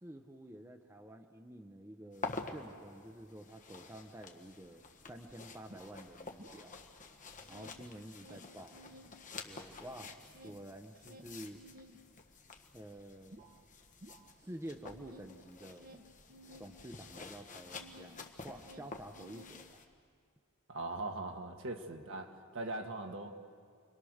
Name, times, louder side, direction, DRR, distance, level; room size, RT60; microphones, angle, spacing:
voice 1, 0.0-6.7 7.5-8.8 9.4-10.1 10.4-11.6 12.7-13.4 14.4-15.9 16.6-19.8, right 1 dB, 10° right, 5 dB, 0.8 m, -50 dB
sound 1, 2.1-19.9, left 3 dB, 35° left, 1.6 m, -49 dB
sound 2, 4.7-4.8 5.0-7.0 7.3-9.2 9.5-18.2 18.5-20.0, equal, 40° right, 1.3 m, -57 dB
voice 2, 20.7-23.3, right 2 dB, 60° right, 4 dB, 1.8 m, -40 dB
30.0 x 23.0 x 6.5 m, 2.2 s
head